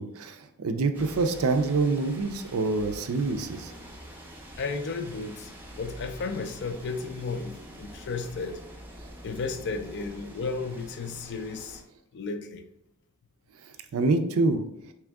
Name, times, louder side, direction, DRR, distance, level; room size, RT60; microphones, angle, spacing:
voice 1, 0.0-3.7 13.9-14.6, right 3 dB, 70° right, 0.4 m, -26 dB
sound 1, 0.9-11.8, equal, 10° right, 0.7 m, -45 dB
voice 2, 4.6-8.6 9.2-11.8 12.1-12.7, left 4 dB, 50° left, 0.4 m, -34 dB
3.6 x 3.0 x 3.4 m
head